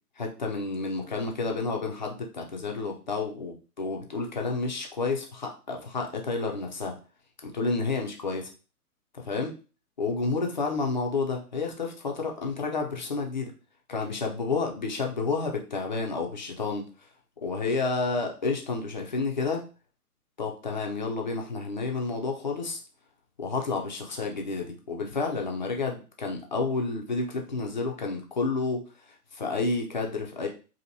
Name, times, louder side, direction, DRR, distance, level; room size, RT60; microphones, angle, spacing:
voice 1, 0.2-7.0 7.4-8.5 9.1-9.5 10.0-13.5 13.9-17.1 17.4-19.7 20.4-22.8 23.4-30.5, left 3 dB, 35° left, 1 dB, 0.4 m, -30 dB
2.7 x 2.7 x 2.6 m, 0.35 s
figure-of-eight pair, 125°, 46 cm